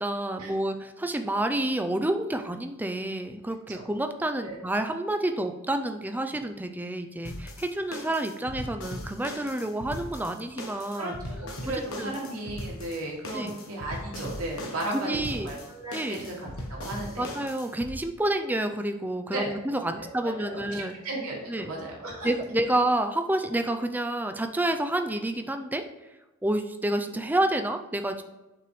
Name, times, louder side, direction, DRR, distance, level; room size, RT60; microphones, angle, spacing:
voice 1, 0.0-11.2 11.7-12.2 13.3-13.6 14.9-15.6 15.9-16.3 17.2-20.9 21.5-21.7 22.2-25.8 26.4-28.2, right 1 dB, 10° right, 7 dB, 0.4 m, -29 dB
sound 1, 7.2-17.9, left 1 dB, 70° left, 1.2 m, -39 dB
voice 2, 10.9-17.4 19.3-19.5 20.0-20.7 21.0-22.3, right 1 dB, 85° right, -3 dB, 2.3 m, -35 dB
7.8 x 6.0 x 3.2 m, 1.0 s
head